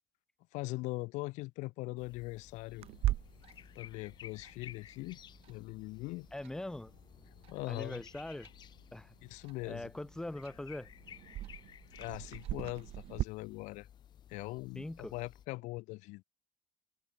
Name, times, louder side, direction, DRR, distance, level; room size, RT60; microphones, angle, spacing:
voice 1, 0.5-2.9 3.8-5.2 5.5-6.3 7.5-8.0 9.2-9.9 12.0-13.9 14.3-16.2, left 22 dB, 85° left, 3.5 m, -41 dB
sound 1, 2.0-15.5, left 10 dB, 35° left, 7.3 m, -56 dB
Clock, 2.8-13.2, right 15 dB, 55° right, 5.4 m, -42 dB
voice 2, 6.3-6.9 7.7-8.5 8.9-9.1 9.6-10.9 14.7-15.1, left 1 dB, 5° left, 4.6 m, -42 dB
open air
cardioid pair, 175°, 12 cm